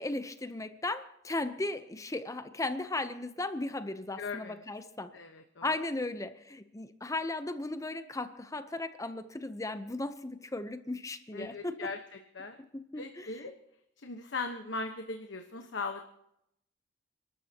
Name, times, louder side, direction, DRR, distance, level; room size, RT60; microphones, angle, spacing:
voice 1, 0.0-5.1 5.6-11.9 12.6-13.5, left 2 dB, 15° left, 10 dB, 0.7 m, -36 dB
voice 2, 4.2-4.6 5.1-5.7 11.3-12.0 12.3-12.6 13.0-13.5 14.0-16.0, left 3 dB, 70° left, 4 dB, 1.2 m, -38 dB
29.0 x 13.0 x 2.9 m, 0.76 s
head